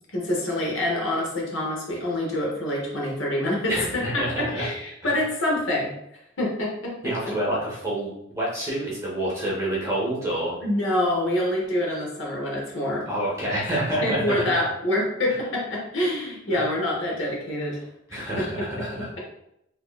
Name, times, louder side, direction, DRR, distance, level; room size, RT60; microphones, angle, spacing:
voice 1, 0.1-5.9 6.4-7.3 10.6-13.1 14.0-17.8 18.1-18.5 19.0-19.1, left 1 dB, 75° left, -2 dB, 1.0 m, -26 dB
voice 2, 3.7-4.7 5.0-5.2 7.0-10.6 13.1-14.5 16.5-16.6 18.1-19.2, right 1 dB, 15° right, -5 dB, 1.1 m, -28 dB
3.8 x 2.9 x 2.4 m, 0.80 s
head